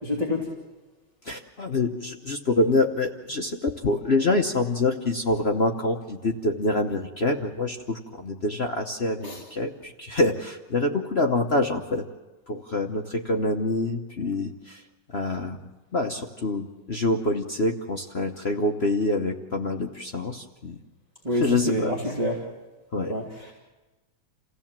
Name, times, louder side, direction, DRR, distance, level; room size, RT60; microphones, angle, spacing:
voice 1, 0.0-0.5 9.2-9.4 21.2-22.4 23.1-23.5, left 1 dB, 20° right, -2 dB, 2.8 m, -27 dB
voice 2, 1.2-12.0 12.5-14.8 15.1-15.6 15.9-20.8 21.3-21.9 22.9-23.2, left 2 dB, 45° left, 3 dB, 0.9 m, -26 dB
28.5 x 16.0 x 7.4 m, 1.2 s
omnidirectional pair, 2.2 m